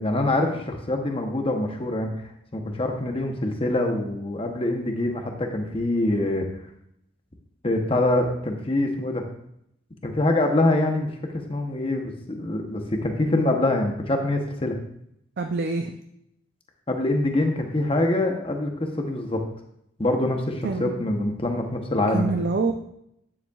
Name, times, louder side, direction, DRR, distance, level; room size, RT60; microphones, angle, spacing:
voice 1, 0.0-6.5 7.6-9.2 10.0-11.1 11.5-14.7 16.9-19.4 20.0-22.3, left 1 dB, 25° left, 3 dB, 0.8 m, -24 dB
voice 2, 15.4-15.9 20.6-21.0 22.1-22.7, right 4 dB, 50° right, 5 dB, 0.4 m, -26 dB
9.6 x 7.2 x 2.4 m, 0.76 s
head